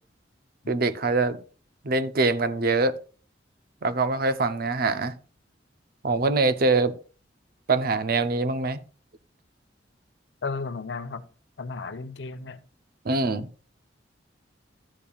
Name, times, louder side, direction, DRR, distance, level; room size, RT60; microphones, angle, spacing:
voice 1, 0.7-1.4 1.8-2.9 3.8-5.1 6.0-7.0 7.7-8.8 13.0-13.5, right 3 dB, 55° right, 0.7 m, -23 dB
voice 2, 10.4-11.2 11.6-12.6, left 4 dB, 70° left, 0.7 m, -33 dB
12.5 x 8.6 x 2.4 m
head